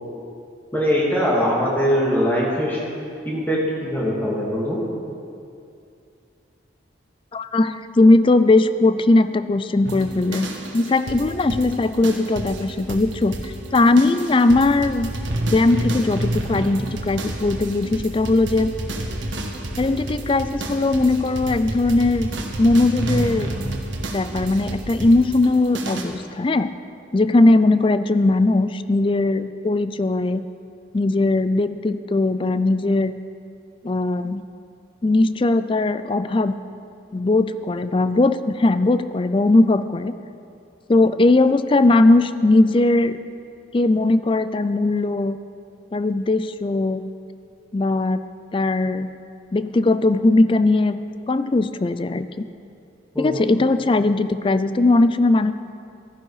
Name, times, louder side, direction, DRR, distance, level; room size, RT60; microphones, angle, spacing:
voice 1, 0.7-2.8 3.2-4.8 53.1-53.5, equal, 10° left, -5 dB, 2.2 m, -22 dB
voice 2, 7.3-10.5 10.7-15.1 15.5-18.7 19.8-22.3 22.6-23.6 24.1-26.7 27.1-30.5 30.9-33.1 33.8-34.4 35.0-36.5 37.1-40.1 40.9-43.2 43.7-45.4 45.9-47.1 47.7-48.2 48.5-49.1 49.5-51.0 51.3-52.5 53.2-55.5, left 2 dB, 25° left, 12 dB, 0.4 m, -19 dB
sound 1, 9.8-26.0, right 1 dB, 80° right, 1.4 m, -29 dB
14.0 x 11.0 x 4.8 m, 2.5 s
head